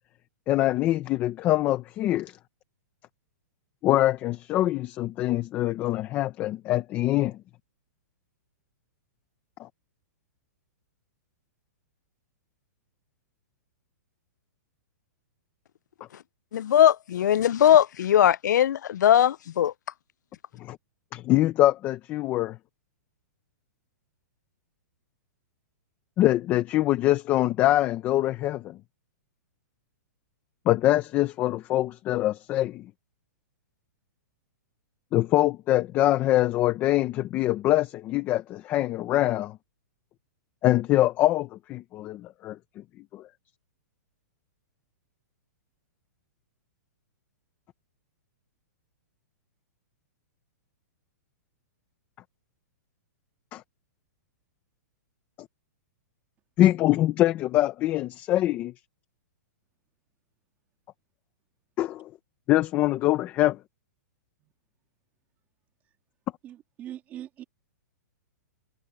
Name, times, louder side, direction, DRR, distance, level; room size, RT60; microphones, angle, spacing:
voice 1, 0.5-2.3 3.8-7.4 9.6-9.7 20.6-20.8 21.1-22.6 26.2-28.8 30.7-32.9 35.1-39.6 40.6-42.6 43.1-43.2 53.5-53.6 56.6-58.7 61.8-62.1 62.5-63.6, left 15 dB, 20° left, 0.7 m, -24 dB
voice 2, 16.5-19.7, left 10 dB, 80° left, 0.4 m, -20 dB
voice 3, 66.4-67.4, right 11 dB, 20° right, 2.4 m, -41 dB
hypercardioid pair, 170°, 10 cm